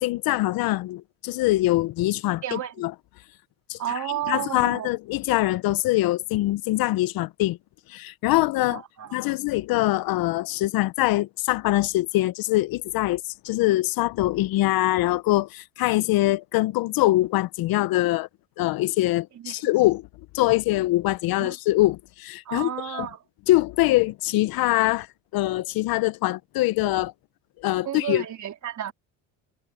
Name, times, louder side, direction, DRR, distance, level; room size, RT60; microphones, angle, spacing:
voice 1, 0.0-2.9 3.7-3.8 4.3-7.6 7.9-8.8 9.1-18.3 18.6-20.0 20.3-23.1 23.5-25.1 25.3-27.1 27.6-28.2, left 17 dB, 60° left, 0.7 m, -23 dB
voice 2, 2.4-2.7 3.8-4.9 8.7-9.2 19.4-19.7 21.4-21.5 22.5-23.2 27.9-28.9, right 11 dB, 45° right, 3.5 m, -32 dB
supercardioid pair, 105°, 41 cm